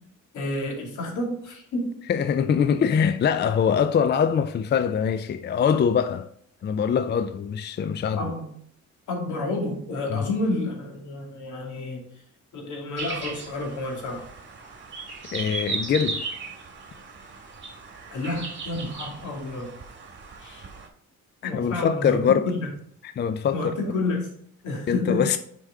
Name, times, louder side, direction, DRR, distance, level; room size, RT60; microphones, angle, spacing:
voice 1, 0.3-1.9 8.2-8.5 9.1-12.1 12.5-14.3 18.1-19.7 20.4-20.7 21.4-22.2 22.4-22.7 23.5-24.3 24.6-25.3, left 2 dB, 75° left, 2.4 m, -30 dB
voice 2, 2.1-6.3 6.6-8.3 10.1-10.3 15.3-16.3 21.4-22.5 23.0-23.7 24.9-25.4, left 7 dB, 35° left, 0.4 m, -23 dB
sound 1, 13.0-20.9, right 4 dB, 40° right, 1.9 m, -36 dB
6.4 x 5.1 x 3.6 m
cardioid pair, 90°, 30 cm